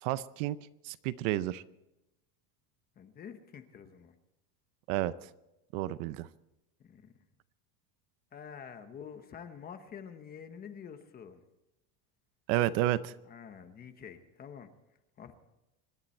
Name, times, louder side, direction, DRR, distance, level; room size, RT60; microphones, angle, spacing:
voice 1, 0.0-0.6 0.8-1.6 4.9-5.1 5.7-6.3 12.5-13.1, right 14 dB, 60° right, 16 dB, 0.7 m, -30 dB
voice 2, 3.0-4.1 6.8-7.1 8.3-11.4 13.3-14.7 15.2-15.3, left 7 dB, 20° left, 8 dB, 1.0 m, -47 dB
26.0 x 11.5 x 4.4 m, 0.93 s
cardioid pair, 175°, 43 cm